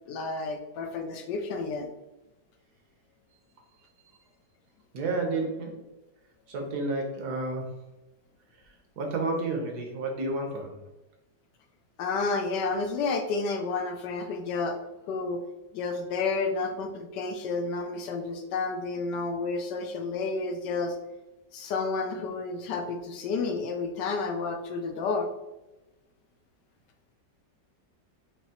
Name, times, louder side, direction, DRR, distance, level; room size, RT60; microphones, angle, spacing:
voice 1, 0.1-1.9 12.0-14.8 15.1-15.4 15.7-21.0 21.5-25.3, left 4 dB, 75° left, 5 dB, 1.1 m, -30 dB
voice 2, 4.9-5.8 6.5-7.7 9.0-10.8, right 2 dB, 65° right, 2 dB, 1.3 m, -31 dB
5.4 x 2.8 x 2.9 m, 1.0 s
omnidirectional pair, 2.0 m